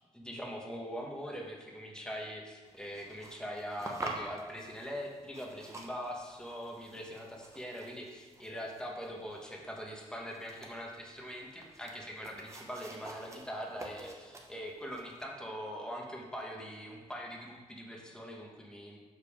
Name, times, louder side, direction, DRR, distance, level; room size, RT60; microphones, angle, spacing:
voice 1, 0.1-19.0, equal, 5° left, 0 dB, 1.1 m, -42 dB
sound 1, 2.6-15.2, right 2 dB, 25° right, 0.9 m, -48 dB
6.7 x 5.3 x 4.9 m, 1.4 s
wide cardioid pair, 140°, 12 cm